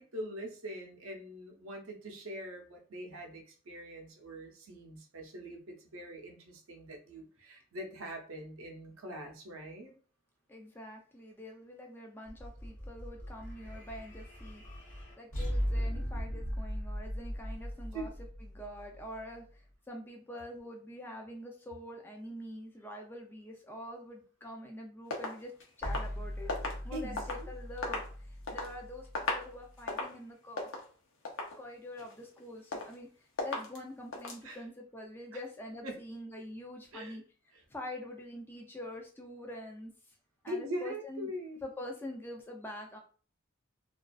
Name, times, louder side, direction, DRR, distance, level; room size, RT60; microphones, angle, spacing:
voice 1, 0.0-9.9 17.9-18.1 26.9-27.5 34.4-34.6 35.8-36.0 36.9-37.2 37.5-37.6 40.5-41.7, equal, 75° right, 2 dB, 0.6 m, -43 dB
voice 2, 10.5-14.6 14.9-18.1 18.4-26.6 26.8-28.0 28.5-30.7 31.6-33.1 33.4-37.2 37.7-39.9 40.4-41.3 41.6-43.0, left 1 dB, 10° left, 1 dB, 0.4 m, -45 dB
sound 1, 12.3-19.6 25.8-29.9, equal, 35° left, 1.1 m, -39 dB
sound 2, 25.1-27.5 27.8-28.7 29.0-29.5 29.8-30.2 30.6-30.9 31.2-31.6 32.0-32.4 32.7-33.1 33.4-33.8 34.1-34.4, left 2 dB, 70° left, 0.6 m, -37 dB
2.3 x 2.3 x 2.3 m, 0.41 s
head